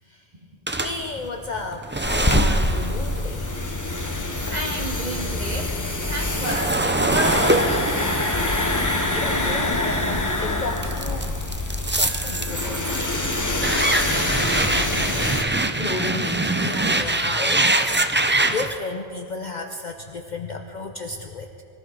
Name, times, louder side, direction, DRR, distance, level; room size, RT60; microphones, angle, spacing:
sound 1, 0.7-4.9 5.3-10.2 10.8-18.8, right 2 dB, 15° right, 0.4 m, -24 dB
voice 1, 0.8-3.6 9.1-11.3 12.0-13.4 13.7-17.9 18.5-21.6, left 3 dB, 50° left, 5 dB, 0.8 m, -33 dB
sound 2, 2.0-15.4, left 2 dB, 20° left, 0.9 m, -25 dB
voice 2, 4.5-5.7 6.1-7.9 8.7-8.8 11.2-11.3, right 1 dB, 40° right, 0 dB, 2.0 m, -31 dB
24.0 x 14.5 x 3.9 m, 2.7 s
omnidirectional pair, 1.1 m